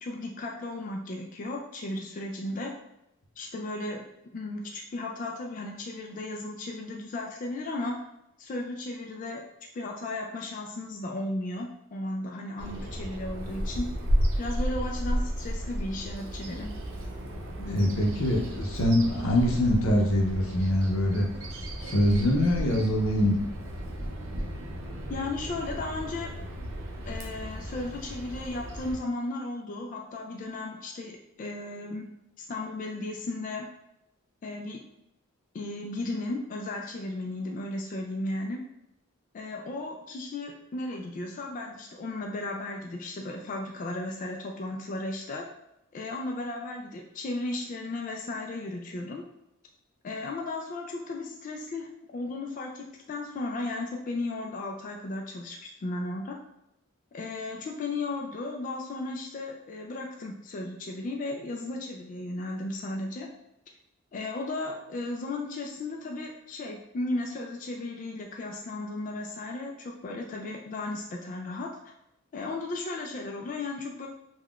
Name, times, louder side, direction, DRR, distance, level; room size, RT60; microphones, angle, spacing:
voice 1, 0.0-2.7 3.4-4.1 4.3-8.0 8.4-9.4 9.7-13.9 14.4-16.7 25.1-26.3 27.1-32.1 32.4-33.7 34.4-34.8 35.5-38.6 39.3-45.5 45.9-49.2 50.0-56.4 57.1-63.3 64.1-71.9 72.3-74.1, left 2 dB, 40° left, 1 dB, 0.3 m, -35 dB
Bird vocalization bird call bird song, 12.6-29.0, equal, 70° right, 0.6 m, -33 dB
voice 2, 17.6-21.3 21.8-23.4, left 1 dB, 90° left, 1 dB, 0.6 m, -24 dB
3.5 x 2.2 x 2.3 m, 0.85 s
head